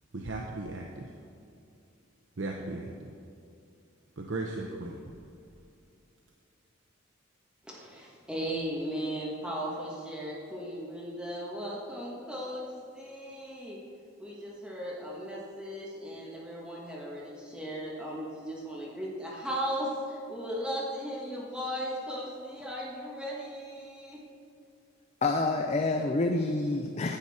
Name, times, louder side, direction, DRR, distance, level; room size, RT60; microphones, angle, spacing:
voice 1, 0.1-1.1 2.4-3.1 4.2-5.1, right 2 dB, 65° right, 1 dB, 0.8 m, -36 dB
voice 2, 7.6-12.7 12.9-13.8 14.2-24.2, equal, 5° right, -5 dB, 1.4 m, -37 dB
voice 3, 25.2-27.2, left 2 dB, 35° left, 4 dB, 0.5 m, -27 dB
10.5 x 8.5 x 4.2 m, 2.5 s
head